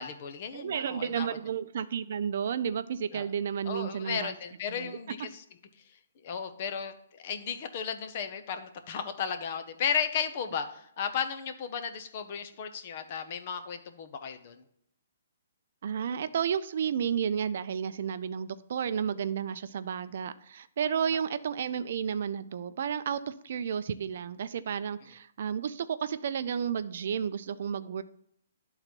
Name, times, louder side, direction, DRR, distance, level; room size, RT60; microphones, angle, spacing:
voice 1, 0.0-1.4 3.1-3.3 3.7-5.4 6.2-14.6, left 7 dB, 40° left, 8 dB, 0.8 m, -34 dB
voice 2, 0.5-4.3 4.8-5.0 15.8-28.0, right 7 dB, 55° right, 13 dB, 0.4 m, -32 dB
11.0 x 3.9 x 4.4 m, 0.71 s
hypercardioid pair, 160°, 0 cm